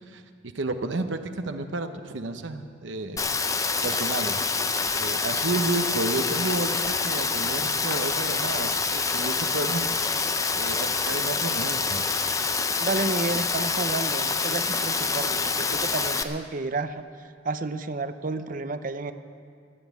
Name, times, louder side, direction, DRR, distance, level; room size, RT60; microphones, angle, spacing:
voice 1, 0.1-3.2 3.8-4.4 4.9-9.9 10.6-12.1, right 2 dB, 80° right, 7 dB, 0.8 m, -31 dB
Rain, 3.2-16.2, left 4 dB, 15° left, 0.5 m, -26 dB
voice 2, 12.8-19.1, right 3 dB, 45° right, 11 dB, 0.6 m, -31 dB
14.0 x 9.5 x 8.2 m, 2.2 s
head